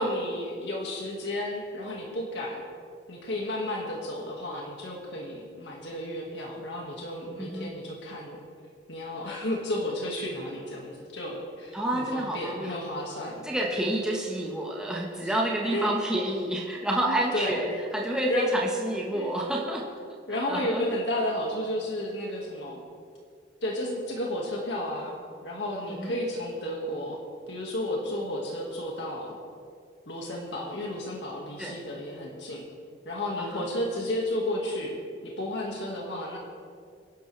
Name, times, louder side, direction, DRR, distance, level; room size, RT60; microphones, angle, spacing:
voice 1, 0.0-2.7 3.1-8.4 8.9-13.7 15.2-15.3 15.6-15.9 17.0-17.6 18.3-18.5 19.1-19.3 20.3-22.8 23.6-27.2 27.5-29.4 30.1-32.7 33.1-35.0 35.2-36.4, left 1 dB, 75° left, -2 dB, 1.9 m, -32 dB
voice 2, 7.4-7.7 11.7-12.8 13.4-19.8 20.5-20.8 26.0-26.1 31.6-31.8 33.4-33.6, right 1 dB, 5° right, -3 dB, 1.3 m, -29 dB
23.5 x 11.5 x 3.4 m, 2.2 s
head